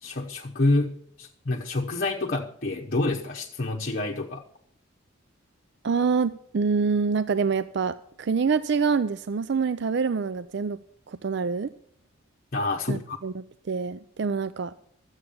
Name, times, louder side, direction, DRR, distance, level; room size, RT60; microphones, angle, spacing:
voice 1, 0.0-4.4 12.5-13.2, left 2 dB, 45° left, 0 dB, 1.0 m, -27 dB
voice 2, 5.8-10.8 11.1-11.7 12.9-14.7, right 5 dB, 55° right, 14 dB, 0.4 m, -26 dB
13.0 x 8.1 x 6.9 m, 0.64 s
head